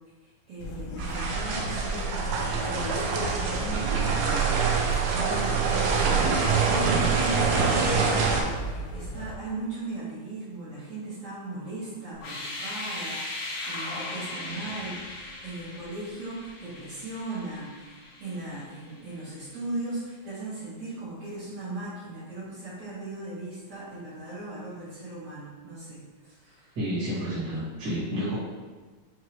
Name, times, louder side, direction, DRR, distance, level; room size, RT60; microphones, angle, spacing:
voice 1, 0.2-4.8 5.1-6.0 6.6-26.8, right 2 dB, 60° right, -12 dB, 2.2 m, -38 dB
sound 1, 0.6-9.3, equal, 85° left, 2.0 m, -36 dB
sound 2, 1.0-8.4, right 5 dB, 80° right, 1.9 m, -25 dB
sound 3, 12.1-19.0, left 2 dB, 70° left, 1.7 m, -38 dB
voice 2, 26.8-28.4, equal, 40° right, -10 dB, 1.9 m, -30 dB
6.2 x 2.7 x 2.9 m, 1.3 s
omnidirectional pair, 3.3 m